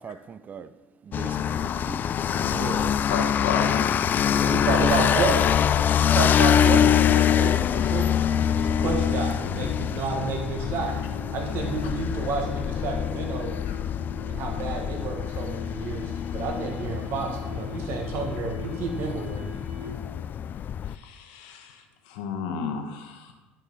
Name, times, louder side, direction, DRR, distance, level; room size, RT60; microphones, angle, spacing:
voice 1, 0.0-2.8 3.4-3.6 4.3-5.4 5.7-6.2, right 6 dB, 35° right, 14 dB, 0.4 m, -38 dB
sound 1, 1.1-20.9, left 9 dB, 40° left, 0.3 m, -25 dB
voice 2, 2.5-2.9 4.3-5.3 5.9-8.1 8.5-10.9 11.3-13.5 14.3-19.6, right 4 dB, 55° right, 2 dB, 1.4 m, -31 dB
voice 3, 3.1-4.0 13.6-13.8 20.9-23.3, left 5 dB, 70° left, 4 dB, 1.2 m, -32 dB
sound 2, 4.2-20.2, left 3 dB, 85° right, 2.3 m, -44 dB
11.0 x 5.4 x 4.0 m, 1.1 s
hypercardioid pair, 65°, 5 cm